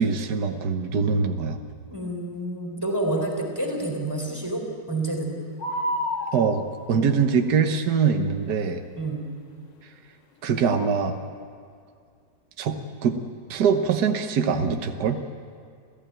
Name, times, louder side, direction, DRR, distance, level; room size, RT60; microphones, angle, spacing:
voice 1, 0.0-1.6 6.3-8.8 10.4-11.2 12.6-12.8 13.0-13.2 13.5-15.2, right 6 dB, 65° right, 5 dB, 1.6 m, -23 dB
voice 2, 1.9-5.3 8.9-9.3, right 2 dB, 10° right, 1 dB, 4.0 m, -28 dB
sound 1, 5.6-7.0 10.7-11.0, left 1 dB, 85° left, 2.3 m, -29 dB
27.0 x 16.0 x 9.0 m, 2.2 s
omnidirectional pair, 1.9 m